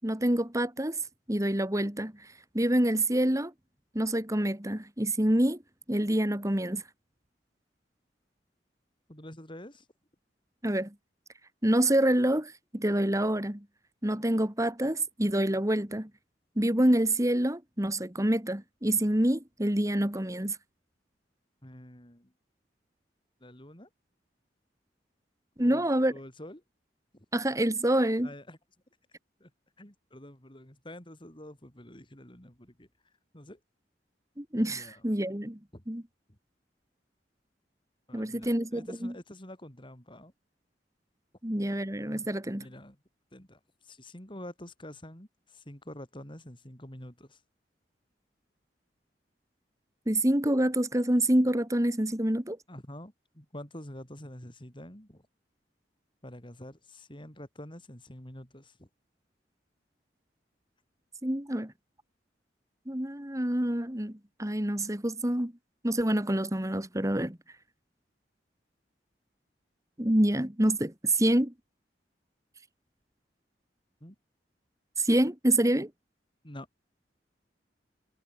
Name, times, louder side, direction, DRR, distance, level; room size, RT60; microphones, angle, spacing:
voice 1, 0.0-3.5 3.9-5.6 5.9-6.8 10.6-10.9 11.6-13.6 14.0-16.1 16.6-20.6 25.6-26.1 27.3-28.3 34.4-35.6 35.9-36.0 38.1-39.1 41.4-42.7 50.1-52.6 61.2-61.7 62.9-65.5 65.8-67.4 70.0-71.5 75.0-75.9, right 1 dB, 20° right, 2.3 m, -27 dB
voice 2, 9.1-9.9 21.6-22.3 23.4-23.9 25.6-26.6 27.1-27.3 28.2-28.6 29.4-29.5 29.8-33.6 34.6-35.0 35.7-35.8 36.3-36.4 38.1-40.3 42.6-43.0 43.3-47.4 52.7-55.3 56.2-58.9 74.0-74.2 76.4-76.7, left 1 dB, 30° left, 5.7 m, -47 dB
head